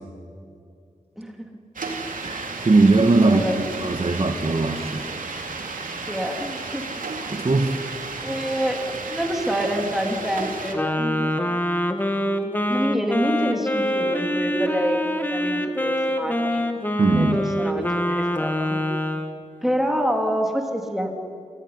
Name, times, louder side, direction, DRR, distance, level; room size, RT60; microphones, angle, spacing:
voice 1, 1.2-1.5 3.2-3.6 6.1-6.9 8.2-11.3 12.7-16.7 17.1-17.3 17.6-18.8 19.6-21.1, equal, ahead, 2 dB, 3.5 m, -27 dB
sound 1, 1.8-10.7, right 3 dB, 75° right, 2.8 m, -33 dB
voice 2, 2.2-5.1 7.3-7.8 17.0-17.4, right 3 dB, 45° right, 5 dB, 1.7 m, -20 dB
Wind instrument woodwind instrument, 10.7-19.4, left 1 dB, 15° left, 1.9 m, -25 dB
28.0 x 16.0 x 9.8 m, 2.4 s
wide cardioid pair, 75°, 14 cm